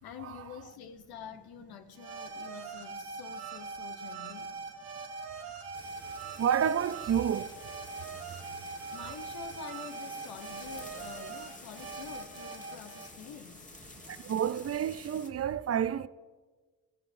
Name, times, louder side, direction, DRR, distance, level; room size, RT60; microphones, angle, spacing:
voice 1, 0.0-4.6 8.9-13.7, left 8 dB, 65° left, 0.8 m, -47 dB
sound 1, 1.9-13.1, right 4 dB, 90° right, 1.4 m, -42 dB
sound 2, 5.7-15.3, left 2 dB, 20° left, 1.5 m, -51 dB
voice 2, 6.4-7.5 14.1-16.1, right 8 dB, 40° right, 0.5 m, -29 dB
14.5 x 11.0 x 2.7 m
supercardioid pair, 55°, 39 cm